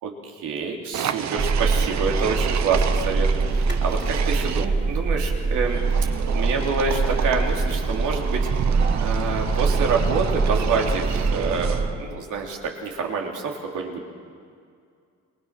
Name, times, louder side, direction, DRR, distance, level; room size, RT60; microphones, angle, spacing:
voice 1, 0.0-5.8 6.1-8.5 9.0-14.1, right 4 dB, 85° right, 0 dB, 3.4 m, -27 dB
sound 1, 0.9-4.6 5.6-12.0, right 9 dB, 65° right, 1.1 m, -31 dB
sound 2, 1.4-11.9, right 4 dB, 35° right, 3.9 m, -24 dB
28.0 x 21.5 x 6.1 m, 2.2 s
cardioid pair, 90°, 30 cm